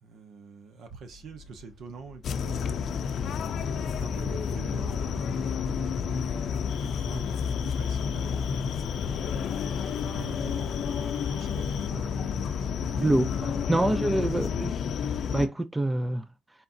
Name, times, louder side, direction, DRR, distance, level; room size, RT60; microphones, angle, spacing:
voice 1, 0.0-3.0 3.8-6.3 6.8-8.7 9.7-14.1, right 4 dB, 70° right, 1.1 m, -46 dB
sound 1, 1.0-15.0, left 4 dB, 30° right, 1.2 m, -50 dB
sound 2, 2.2-15.5, left 6 dB, 65° left, 0.5 m, -30 dB
Cricket, 6.7-11.9, left 8 dB, 90° left, 0.8 m, -48 dB
voice 2, 13.0-13.3 13.7-14.7 15.3-16.3, right 1 dB, 15° right, 0.4 m, -25 dB
4.3 x 3.7 x 2.7 m
cardioid pair, 90°, 0 cm